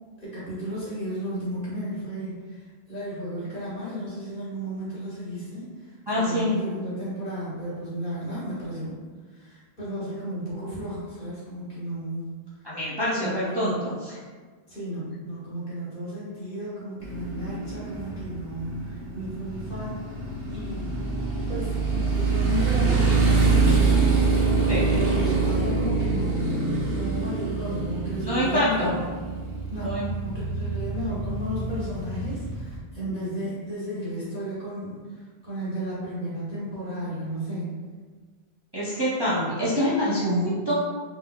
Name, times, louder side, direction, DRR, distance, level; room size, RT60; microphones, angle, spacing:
voice 1, 0.2-2.6 2.9-9.0 9.3-12.3 13.1-13.8 14.7-20.0 20.5-24.5 24.7-29.1 29.7-29.9 30.2-37.7, equal, 55° left, -9 dB, 1.6 m, -33 dB
voice 2, 6.1-6.6 12.6-14.2 24.7-24.8 28.2-28.9 29.8-30.1 38.7-40.7, equal, 30° right, -9 dB, 0.5 m, -25 dB
Motorcycle, 17.0-32.8, right 4 dB, 65° right, 0.9 m, -25 dB
3.6 x 3.2 x 2.2 m, 1.5 s
omnidirectional pair, 1.1 m